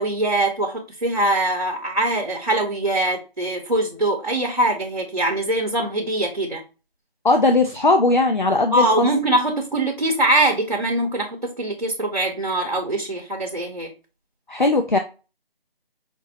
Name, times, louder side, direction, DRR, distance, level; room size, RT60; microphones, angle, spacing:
voice 1, 0.0-6.6 8.7-13.9, right 1 dB, 50° right, 0.7 m, -22 dB
voice 2, 7.2-9.1 14.5-15.0, left 2 dB, 50° left, 0.4 m, -18 dB
5.1 x 2.1 x 2.6 m
figure-of-eight pair, 175°, 31 cm